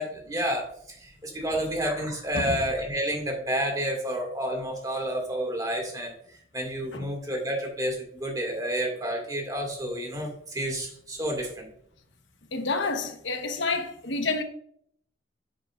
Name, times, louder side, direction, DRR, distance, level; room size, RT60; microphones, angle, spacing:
voice 1, 0.0-11.7, equal, 20° right, 2.0 m, -30 dB
voice 2, 12.5-14.4, left 3 dB, 90° left, 1.2 m, -29 dB
10.5 x 7.4 x 2.5 m
head